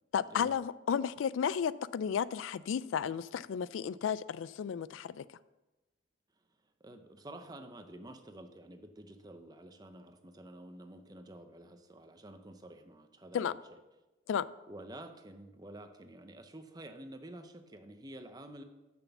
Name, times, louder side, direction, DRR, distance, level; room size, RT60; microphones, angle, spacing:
voice 1, 0.1-5.2 13.3-13.5 14.3-14.5, left 7 dB, 90° left, 0.3 m, -33 dB
voice 2, 6.8-13.8 14.7-18.6, right 1 dB, 20° right, 0.6 m, -50 dB
7.0 x 6.1 x 7.0 m
head